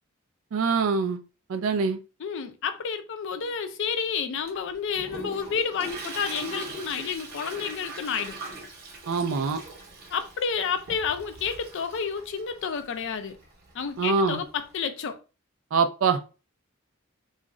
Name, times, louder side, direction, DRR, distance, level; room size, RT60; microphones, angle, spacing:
voice 1, 0.5-1.2 1.5-2.0 9.1-9.6 14.0-14.4 15.7-16.3, right 5 dB, 70° right, 0.4 m, -24 dB
voice 2, 2.2-8.4 10.1-13.4 13.7-15.2, left 6 dB, 60° left, 0.4 m, -30 dB
Toilet flush, 4.5-14.7, right 2 dB, 45° right, 0.9 m, -42 dB
2.4 x 2.0 x 3.6 m
head